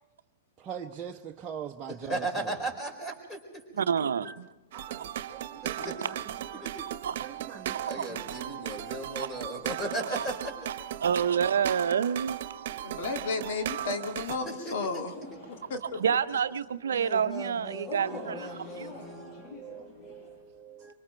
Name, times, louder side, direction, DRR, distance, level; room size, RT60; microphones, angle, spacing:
voice 1, 0.6-2.5 4.2-4.4 4.7-6.2 6.5-6.7 7.2-8.4 12.6-13.0 14.8-14.9 15.3-15.4 18.2-20.9, right 8 dB, 25° right, 0.9 m, -44 dB
voice 2, 1.9-3.6 5.6-6.1 6.6-6.9 7.9-10.9 14.4-15.0 16.9-19.4, right 1 dB, 15° left, 5.0 m, -37 dB
voice 3, 3.7-4.5 7.0-7.2 8.0-8.1 9.2-9.3 10.1-10.3 11.0-12.4 16.0-18.9, right 7 dB, 80° right, 0.6 m, -28 dB
sound 1, 4.7-14.4, right 11 dB, 60° right, 1.1 m, -37 dB
voice 4, 12.8-15.1 15.7-16.0, left 4 dB, 60° left, 2.1 m, -33 dB
sound 2, 15.0-16.2 17.8-20.4, left 1 dB, 35° left, 7.1 m, -44 dB
24.5 x 24.5 x 4.5 m
hypercardioid pair, 115°, 0 cm